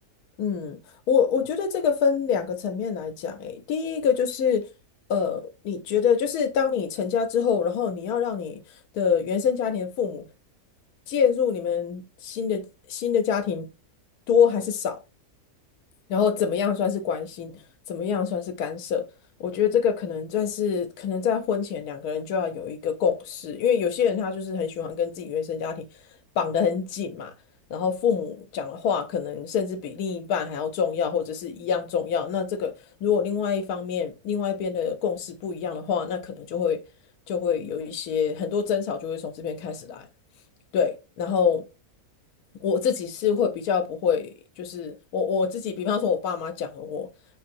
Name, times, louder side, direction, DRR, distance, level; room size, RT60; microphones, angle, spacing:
voice 1, 0.4-0.8 1.1-4.7 5.1-8.6 8.9-10.2 11.1-13.7 14.3-15.0 16.1-19.1 19.4-25.9 26.4-27.3 27.7-32.7 33.0-36.8 37.3-40.0 40.7-41.7 42.6-47.1, left 7 dB, 80° left, 1.1 m, -26 dB
4.3 x 2.6 x 2.5 m
omnidirectional pair, 1.6 m